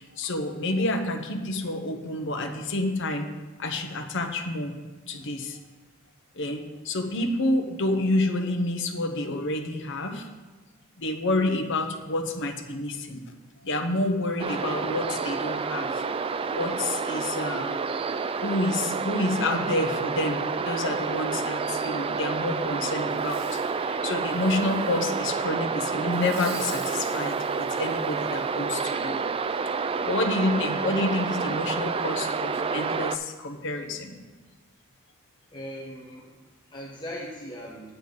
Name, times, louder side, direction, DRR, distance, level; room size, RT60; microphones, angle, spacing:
voice 1, 0.0-3.3 3.6-4.7 5.1-5.6 6.3-10.3 11.0-13.2 13.6-16.1 16.5-17.8 18.4-29.2 30.0-34.2, left 2 dB, 60° left, 4 dB, 1.1 m, -29 dB
sound 1, 14.4-33.2, right 5 dB, 25° right, 0.3 m, -29 dB
Fireworks, 23.1-23.7 24.2-25.3 26.1-28.5 29.0-29.1, right 3 dB, 65° right, 3.0 m, -47 dB
voice 2, 35.5-38.0, equal, 20° left, -4 dB, 1.3 m, -40 dB
9.1 x 9.0 x 4.0 m, 1.3 s
head